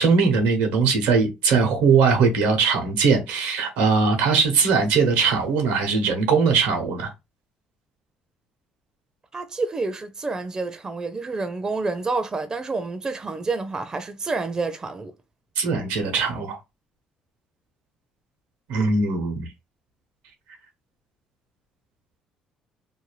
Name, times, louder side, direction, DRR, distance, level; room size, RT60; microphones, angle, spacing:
voice 1, 0.0-7.1 15.6-16.6 18.7-19.5, right 5 dB, 85° right, 0.9 m, -20 dB
voice 2, 9.3-15.1, right 3 dB, 25° right, 0.4 m, -28 dB
2.6 x 2.3 x 3.1 m
supercardioid pair, 75°, 3 cm